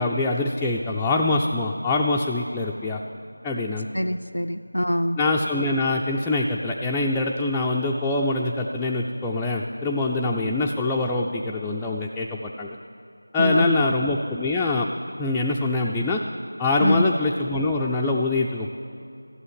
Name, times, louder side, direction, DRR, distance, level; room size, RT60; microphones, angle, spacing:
voice 1, 0.0-3.0 3.4-3.9 5.2-12.8 13.3-14.9 15.2-16.2 16.6-18.7, left 2 dB, 5° left, -5 dB, 0.3 m, -24 dB
voice 2, 3.9-5.2 13.4-13.9 16.8-17.1, equal, 90° left, 5 dB, 0.4 m, -24 dB
13.0 x 7.8 x 9.6 m, 2.6 s
figure-of-eight pair, 170°, 0 cm